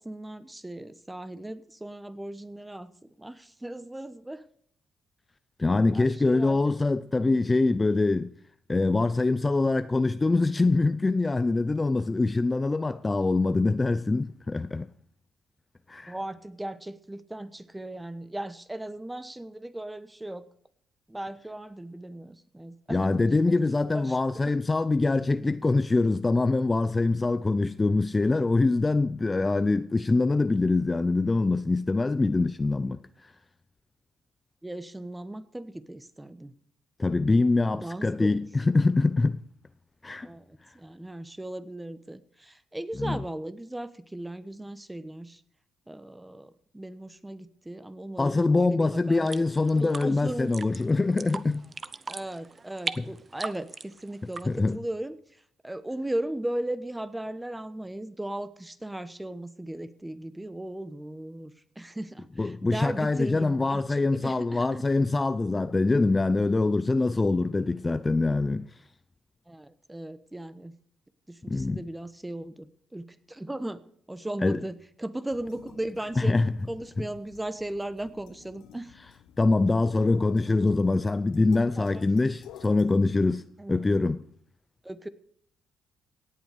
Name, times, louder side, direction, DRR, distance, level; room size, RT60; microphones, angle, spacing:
voice 1, 0.0-2.9 3.2-4.4 5.9-6.8 16.1-20.5 21.1-23.5 23.9-24.2 24.4-24.5 34.6-36.5 37.8-38.4 40.2-45.4 45.9-49.3 49.8-50.5 52.1-55.2 55.6-64.8 67.0-67.1 67.6-67.8 69.5-70.7 71.3-73.8 74.1-76.3 76.7-78.9 81.8-82.1 83.6-83.8 84.8-85.1, right 1 dB, 10° right, 1.0 m, -37 dB
voice 2, 5.6-8.3 8.7-14.9 15.9-16.1 22.9-33.3 37.0-39.4 40.0-40.3 43.0-43.2 48.2-51.6 53.0-53.1 54.5-54.8 62.4-68.7 71.5-71.8 74.4-74.6 76.2-76.5 79.4-83.4 83.7-84.2, left 3 dB, 20° left, 0.5 m, -24 dB
sound 1, 49.2-54.7, right 4 dB, 35° right, 0.7 m, -39 dB
sound 2, 75.3-82.9, left 11 dB, 90° left, 0.9 m, -52 dB
17.5 x 8.1 x 5.0 m
cardioid pair, 90°, 0 cm